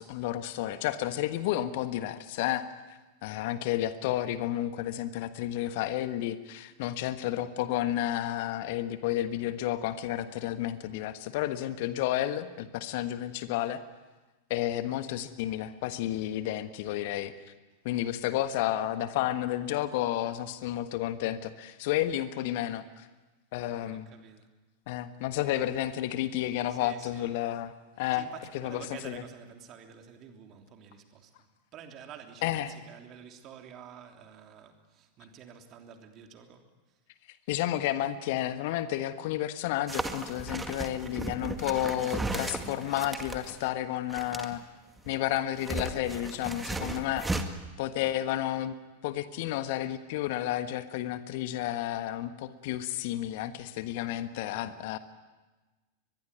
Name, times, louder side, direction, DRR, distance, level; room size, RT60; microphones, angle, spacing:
voice 1, 0.0-13.8 14.5-17.3 17.8-23.1 23.5-24.1 24.9-28.3 28.6-29.2 32.4-32.7 37.5-44.6 45.0-47.2 47.8-48.7 49.0-55.0, left 13 dB, 50° left, 11 dB, 1.4 m, -31 dB
voice 2, 23.7-24.5 26.7-27.5 27.9-31.5 31.7-37.0, right 7 dB, 35° right, 4 dB, 3.1 m, -49 dB
sound 1, 39.9-43.6 44.1-44.5 45.0-47.4, right 2 dB, 10° right, 2.0 m, -35 dB
23.0 x 21.5 x 9.6 m, 1.2 s
figure-of-eight pair, 90°, 0 cm